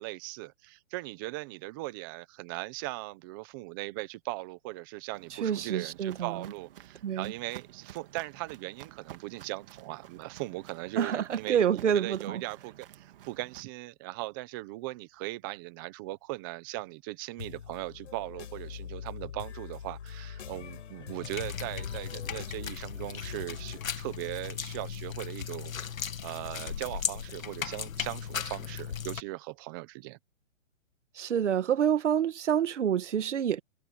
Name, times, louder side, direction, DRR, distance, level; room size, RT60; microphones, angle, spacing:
voice 1, 0.0-25.7 26.2-30.2, right 20 dB, 15° right, 0.9 m, -39 dB
Walk footsteps, 5.1-13.6, right 12 dB, 45° right, 2.4 m, -51 dB
voice 2, 5.3-6.5 7.0-7.3 11.0-12.4 31.2-33.6, right 9 dB, 60° right, 2.0 m, -28 dB
sound 1, 17.4-23.8, left 8 dB, 65° left, 6.4 m, -42 dB
sound 2, 21.2-29.2, left 7 dB, 85° left, 2.2 m, -37 dB
hypercardioid pair, 165°, 39 cm